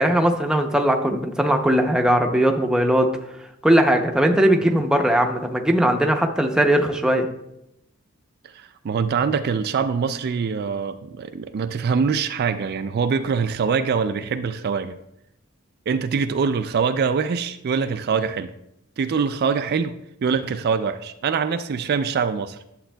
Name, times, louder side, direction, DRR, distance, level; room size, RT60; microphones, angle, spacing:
voice 1, 0.0-3.1 3.6-7.3, right 1 dB, 5° right, 3 dB, 0.6 m, -19 dB
voice 2, 8.4-15.0 15.9-18.5 19.0-19.9 20.2-22.6, right 5 dB, 50° right, 9 dB, 0.3 m, -24 dB
11.5 x 7.4 x 2.2 m, 0.83 s
head